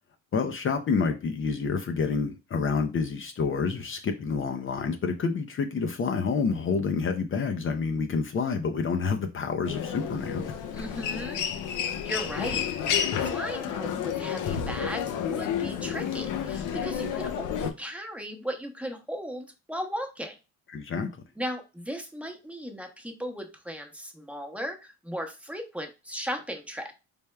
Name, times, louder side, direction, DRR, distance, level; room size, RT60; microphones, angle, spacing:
voice 1, 0.3-10.6 20.7-21.1, left 5 dB, 45° left, 0.6 m, -28 dB
Human voice, 9.6-17.7, left 8 dB, 90° left, 0.6 m, -30 dB
voice 2, 10.7-11.4 11.9-20.3 21.4-27.0, equal, 5° right, 0.9 m, -37 dB
4.3 x 3.4 x 2.2 m
cardioid pair, 90°, 30 cm